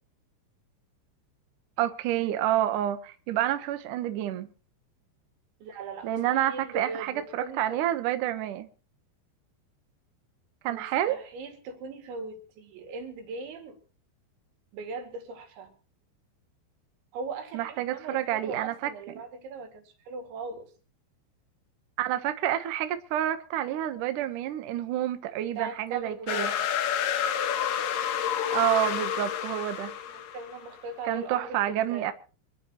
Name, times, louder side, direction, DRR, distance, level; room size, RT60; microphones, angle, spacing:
voice 1, 1.8-4.5 6.0-8.7 10.6-11.2 17.5-18.9 22.0-26.5 28.5-29.9 31.1-32.1, right 12 dB, 90° right, 1.8 m, -28 dB
voice 2, 5.6-7.8 10.7-13.8 14.7-15.8 17.1-20.7 25.4-26.7 30.1-32.1, right 4 dB, 70° right, 4.7 m, -39 dB
sound 1, 26.3-30.7, left 9 dB, 90° left, 1.9 m, -29 dB
26.0 x 11.5 x 3.1 m
omnidirectional pair, 5.6 m